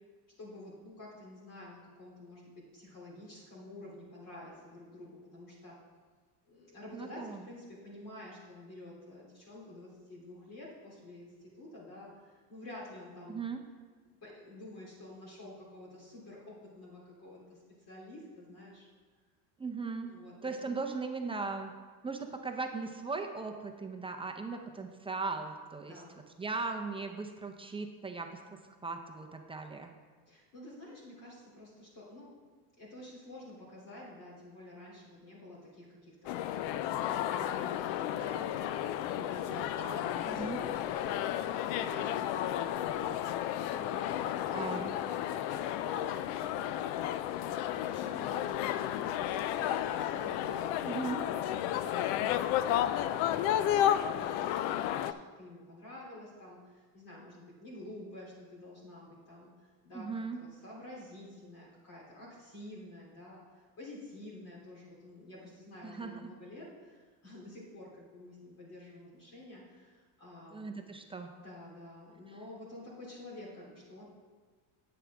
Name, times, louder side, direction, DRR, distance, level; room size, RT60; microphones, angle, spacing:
voice 1, 0.4-5.7 6.4-13.4 14.2-17.6 17.9-18.9 20.0-20.7 25.8-26.2 30.3-32.3 32.7-36.7 37.0-46.9 47.5-51.4 51.7-60.1 60.3-70.8 71.4-74.1, left 1 dB, 40° left, -6 dB, 3.2 m, -50 dB
voice 2, 6.9-7.4 13.3-13.6 19.6-20.1 20.4-21.7 22.0-26.0 26.4-28.4 28.8-29.9 40.3-40.6 44.5-44.9 50.9-51.2 59.9-60.4 65.8-66.3 70.5-71.3, right 4 dB, 10° right, 3 dB, 0.6 m, -38 dB
sound 1, 36.3-55.1, left 11 dB, 60° left, 0.6 m, -32 dB
9.8 x 8.8 x 3.5 m, 1.5 s
supercardioid pair, 125°, 49 cm